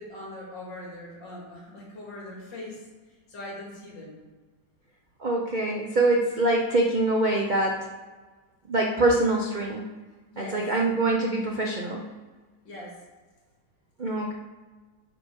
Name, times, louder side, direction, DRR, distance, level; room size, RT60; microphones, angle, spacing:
voice 1, 0.0-4.2 10.3-10.7 12.6-13.0, left 1 dB, 90° left, -4 dB, 2.9 m, -41 dB
voice 2, 5.2-7.8 8.7-9.9 10.4-12.1 14.0-14.3, right 2 dB, 70° right, 0 dB, 0.4 m, -24 dB
8.5 x 4.1 x 5.4 m, 1.3 s
omnidirectional pair, 1.9 m